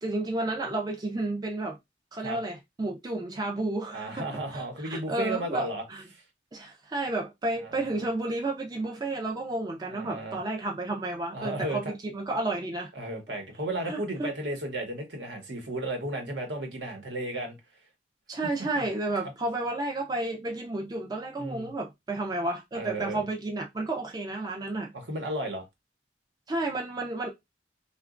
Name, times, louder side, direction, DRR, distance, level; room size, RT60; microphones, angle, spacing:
voice 1, 0.0-1.8 2.1-6.0 6.5-12.9 13.8-14.3 18.3-24.9 26.5-27.3, right 2 dB, 20° right, 0.4 m, -32 dB
voice 2, 3.9-5.8 7.6-8.0 9.9-10.4 11.3-11.9 12.9-17.6 18.7-18.8 21.4-21.7 22.7-23.2 24.9-25.6, right 1 dB, 70° right, 0.9 m, -34 dB
2.9 x 2.2 x 2.4 m
head